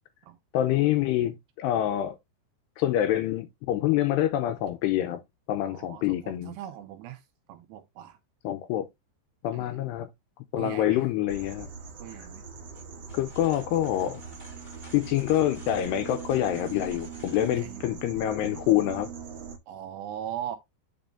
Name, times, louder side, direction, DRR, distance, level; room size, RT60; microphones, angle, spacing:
voice 1, 0.5-2.2 2.8-5.2 5.5-6.6 8.4-8.9 9.4-10.1 10.5-11.7 13.1-14.2 14.9-19.1, left 12 dB, 80° left, 2.6 m, -26 dB
voice 2, 5.6-8.2 9.5-9.8 10.6-11.0 12.0-12.4 17.5-17.9 19.7-20.6, right 11 dB, 80° right, 2.7 m, -40 dB
sound 1, 11.3-19.6, right 6 dB, 60° right, 1.8 m, -41 dB
sound 2, 12.7-17.7, left 2 dB, 5° left, 4.9 m, -53 dB
9.1 x 6.0 x 2.7 m
omnidirectional pair, 5.2 m